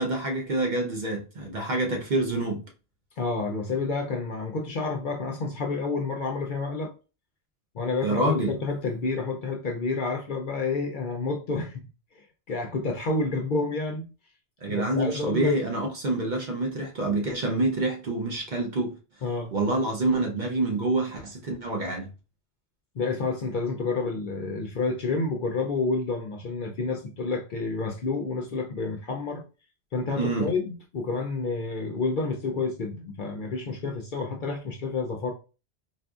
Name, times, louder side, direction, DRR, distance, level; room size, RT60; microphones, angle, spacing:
voice 1, 0.0-2.6 8.0-8.6 14.6-18.9 19.5-22.1 30.2-30.5, right 2 dB, 50° right, 0.6 m, -27 dB
voice 2, 3.2-6.9 7.7-11.8 12.5-14.1 14.7-15.5 19.2-19.5 22.9-29.4 29.9-35.3, left 3 dB, 60° left, 0.6 m, -29 dB
4.1 x 2.4 x 2.3 m
omnidirectional pair, 1.2 m